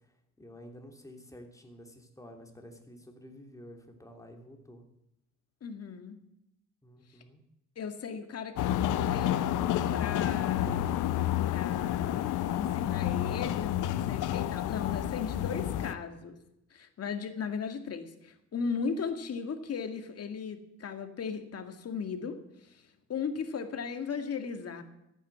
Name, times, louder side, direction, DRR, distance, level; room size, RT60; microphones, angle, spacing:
voice 1, 0.4-4.8 6.8-7.4, equal, 10° left, 3 dB, 3.0 m, -50 dB
voice 2, 5.6-6.2 7.8-9.4 9.9-10.8 11.5-16.4 16.7-24.8, left 6 dB, 55° left, 7 dB, 2.1 m, -37 dB
sound 1, 8.6-15.9, left 12 dB, 85° left, 0.8 m, -30 dB
14.5 x 9.3 x 7.7 m, 0.86 s
cardioid pair, 90°, 30 cm